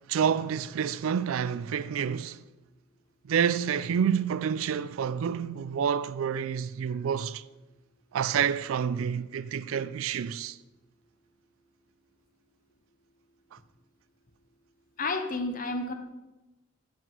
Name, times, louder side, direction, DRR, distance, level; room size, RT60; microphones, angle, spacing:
voice 1, 0.1-2.4 3.2-7.4 8.1-10.6, right 7 dB, 90° right, 0.4 m, -28 dB
voice 2, 15.0-15.9, left 2 dB, 40° left, 0.7 m, -30 dB
7.2 x 5.7 x 5.4 m
head